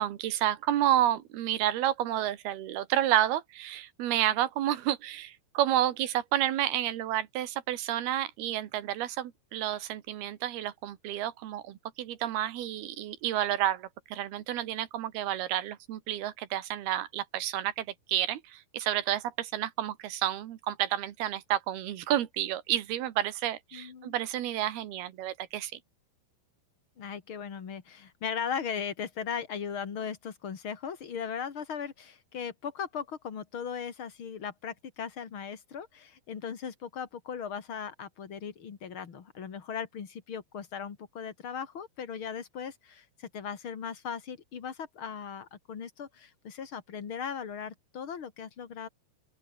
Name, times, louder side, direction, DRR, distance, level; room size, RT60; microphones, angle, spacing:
voice 1, 0.0-25.8, right 12 dB, 70° right, 3.4 m, -30 dB
voice 2, 23.7-24.2 27.0-48.9, left 7 dB, 40° left, 2.3 m, -38 dB
open air
omnidirectional pair, 4.9 m